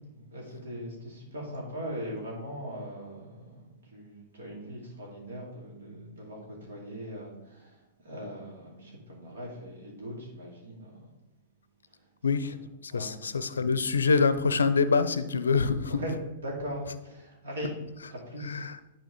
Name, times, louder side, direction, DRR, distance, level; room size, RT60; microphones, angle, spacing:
voice 1, 0.1-3.6 3.9-7.8 8.0-10.9 12.9-13.2 15.5-15.6 15.9-16.1 16.4-17.7 18.1-18.6, equal, 65° right, -2 dB, 3.0 m, -40 dB
voice 2, 12.2-12.6 12.9-16.0 18.4-18.8, left 5 dB, 70° left, 12 dB, 0.5 m, -25 dB
10.5 x 4.4 x 3.9 m, 1.0 s
figure-of-eight pair, 105°, 0 cm